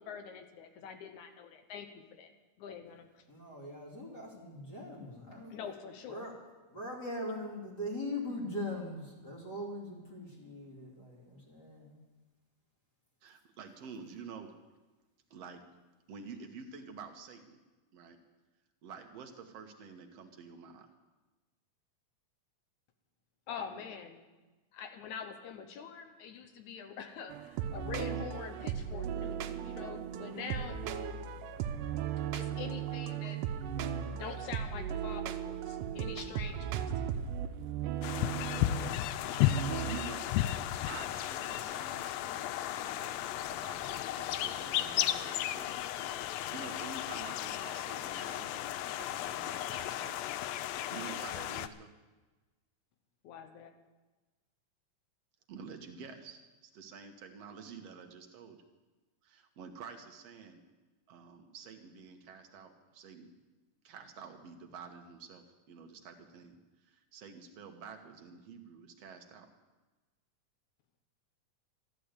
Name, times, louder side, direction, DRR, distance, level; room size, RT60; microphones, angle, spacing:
voice 1, 0.0-2.3 2.6-3.2 5.5-6.2 23.5-24.2 24.7-30.8 32.3-33.4 34.1-37.2 53.2-53.7, left 7 dB, 70° left, 7 dB, 2.3 m, -45 dB
voice 2, 3.3-5.5 6.1-6.3 6.7-12.0, left 1 dB, 30° left, -3 dB, 3.1 m, -41 dB
voice 3, 13.2-14.5 15.3-15.6 16.1-17.6 17.9-18.2 18.8-20.9 39.4-40.3 40.9-45.7 46.3-48.7 49.0-50.2 50.9-51.9 55.5-58.6 59.2-60.6 61.1-63.3 63.8-69.5, right 5 dB, 60° right, 5 dB, 2.1 m, -49 dB
sound 1, 27.3-40.1, right 8 dB, 85° right, 2.4 m, -37 dB
sound 2, 38.0-51.7, left 13 dB, 90° left, 1.5 m, -34 dB
13.5 x 11.5 x 8.2 m, 1.2 s
omnidirectional pair, 3.7 m